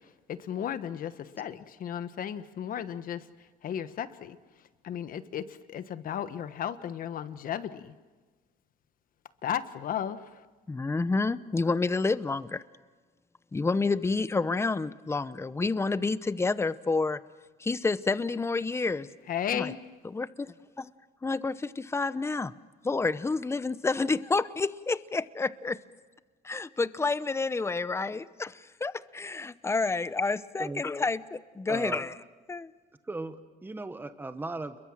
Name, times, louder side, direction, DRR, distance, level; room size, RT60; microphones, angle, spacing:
voice 1, 0.3-3.3 3.6-4.4 4.8-7.9 9.4-10.4 19.3-19.8, left 9 dB, 55° left, 12 dB, 1.3 m, -34 dB
voice 2, 10.7-12.6 13.5-17.2 17.6-19.1 19.5-19.7 20.0-20.9 21.2-22.5 22.8-25.8 26.4-32.1 32.5-32.7, left 3 dB, 15° left, 16 dB, 0.8 m, -29 dB
voice 3, 31.7-32.0 33.0-34.8, right 2 dB, 10° right, 10 dB, 1.2 m, -37 dB
29.0 x 22.0 x 7.4 m, 1.3 s
cardioid pair, 110°, 17 cm